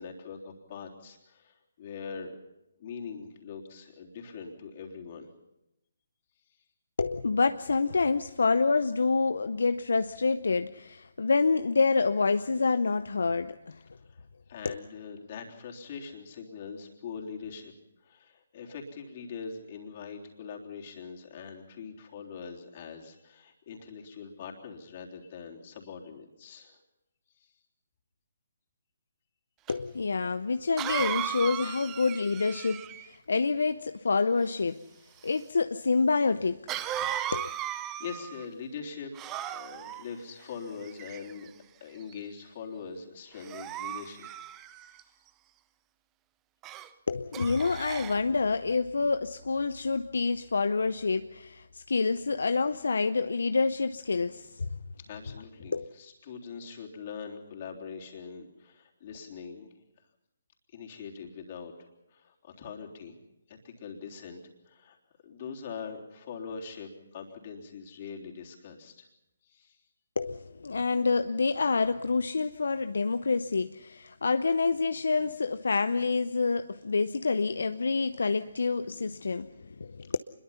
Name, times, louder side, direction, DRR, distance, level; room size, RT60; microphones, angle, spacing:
voice 1, 0.0-2.3 2.8-5.3 14.1-17.7 18.0-26.8 27.3-27.5 37.0-37.3 38.0-41.5 41.8-44.3 45.0-45.1 55.0-59.7 60.7-63.2 63.5-65.0 65.2-69.1 69.4-69.8, left 6 dB, 40° left, 3.6 m, -43 dB
voice 2, 7.0-13.8 14.6-14.8 29.7-34.8 35.2-36.6 37.3-37.5 47.1-54.7 55.7-55.8 70.2-80.2, left 4 dB, 70° left, 0.7 m, -27 dB
Cough, 29.7-29.8 30.8-33.1 36.7-38.4 39.1-40.0 40.8-41.5 42.1-42.4 43.4-45.0 46.6-46.9 47.3-48.2, right 12 dB, 20° right, 0.8 m, -36 dB
25.5 x 22.0 x 5.7 m
figure-of-eight pair, 145°, 0 cm